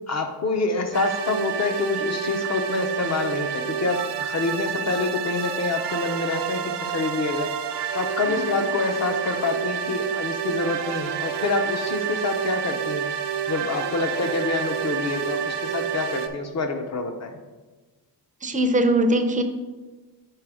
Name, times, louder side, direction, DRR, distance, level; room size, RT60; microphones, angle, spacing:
voice 1, 0.1-7.5 7.9-13.1 13.5-17.4, left 3 dB, 40° left, 6 dB, 0.7 m, -27 dB
sound 1, 0.9-16.3, right 8 dB, 90° right, 0.6 m, -29 dB
voice 2, 18.4-19.4, right 1 dB, 20° right, 6 dB, 0.5 m, -21 dB
5.3 x 4.7 x 4.9 m, 1.2 s
wide cardioid pair, 150°, 39 cm